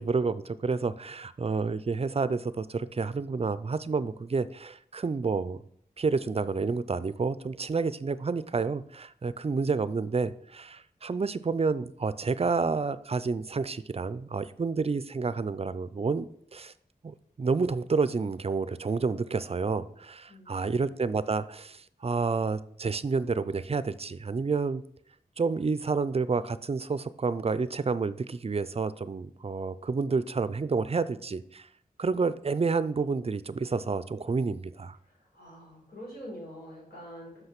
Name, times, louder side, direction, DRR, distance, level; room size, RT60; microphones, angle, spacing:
voice 1, 0.0-5.6 6.0-16.7 17.0-24.8 25.4-31.7 32.0-35.0, right 4 dB, 40° right, 15 dB, 0.4 m, -29 dB
voice 2, 20.3-21.0 35.3-37.4, equal, 90° left, -4 dB, 3.6 m, -45 dB
5.7 x 5.6 x 5.9 m, 0.65 s
wide cardioid pair, 85°, 16 cm